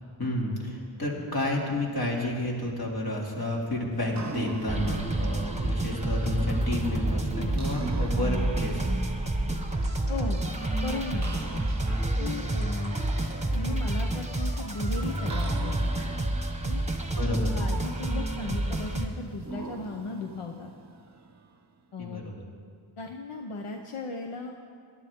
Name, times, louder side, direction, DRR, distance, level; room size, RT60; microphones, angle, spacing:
voice 1, 0.2-8.8 17.2-17.6 22.0-22.4, left 1 dB, 45° left, -2 dB, 2.6 m, -30 dB
sound 1, 3.9-21.7, right 3 dB, 35° right, 0.7 m, -44 dB
sound 2, 4.7-19.1, right 1 dB, 15° right, 1.2 m, -29 dB
voice 2, 10.1-10.4 10.8-11.7 12.2-13.0 13.5-15.9 16.6-16.9 17.5-20.7 21.9-22.3 23.0-24.5, left 3 dB, 80° left, 3 dB, 0.9 m, -36 dB
17.5 x 11.0 x 3.6 m, 2.2 s
wide cardioid pair, 55°, 50 cm